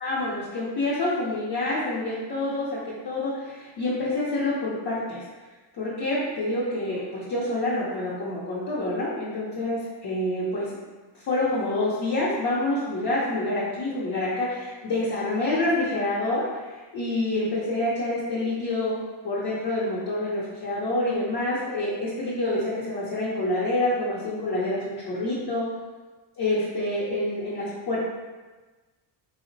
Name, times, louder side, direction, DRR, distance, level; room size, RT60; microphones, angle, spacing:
voice 1, 0.0-5.2 5.8-10.7 11.1-16.7 16.9-19.0 19.2-25.7 26.4-28.0, left 2 dB, 55° left, -8 dB, 0.7 m, -27 dB
3.1 x 2.1 x 3.8 m, 1.3 s
cardioid pair, 145°, 47 cm